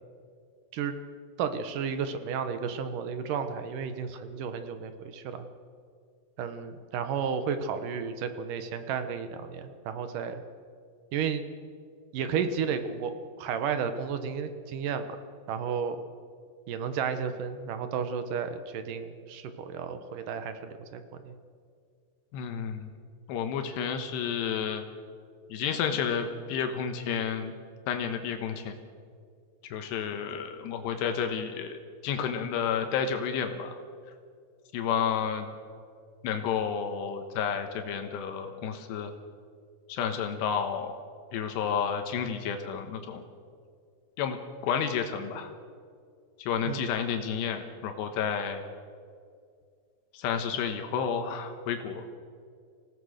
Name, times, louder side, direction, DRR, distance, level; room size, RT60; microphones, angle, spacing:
voice 1, 1.4-5.5 6.4-10.4 11.1-11.4 12.1-13.1 13.4-15.1 15.5-16.0 16.7-21.3 46.7-46.9, right 6 dB, 70° right, 9 dB, 2.2 m, -32 dB
voice 2, 22.3-22.9 23.3-24.8 25.5-27.5 27.9-28.7 29.6-33.8 34.7-35.5 36.2-39.1 39.9-40.9 41.3-43.2 44.2-45.5 46.4-48.6 50.1-52.0, left 7 dB, 80° left, 6 dB, 3.3 m, -31 dB
27.0 x 17.0 x 6.5 m, 2.2 s
omnidirectional pair, 4.9 m